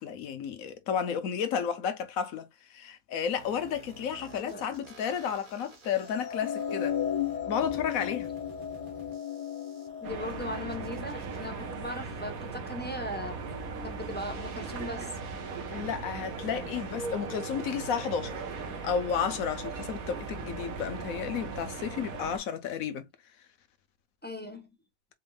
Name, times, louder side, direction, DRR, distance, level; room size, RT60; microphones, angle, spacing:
voice 1, 0.0-7.0 7.4-8.3 15.7-18.5 18.8-23.1, left 7 dB, 80° left, 1.2 m, -32 dB
sound 1, 3.4-11.4, right 4 dB, 40° right, 1.1 m, -52 dB
voice 2, 4.3-4.6 10.0-13.4 13.8-15.2 24.2-24.7, left 1 dB, 10° left, 0.9 m, -38 dB
sound 2, 6.0-12.3, left 9 dB, 55° left, 1.9 m, -35 dB
sound 3, 10.0-22.4, right 4 dB, 80° right, 1.5 m, -38 dB
4.4 x 3.7 x 2.4 m
omnidirectional pair, 1.5 m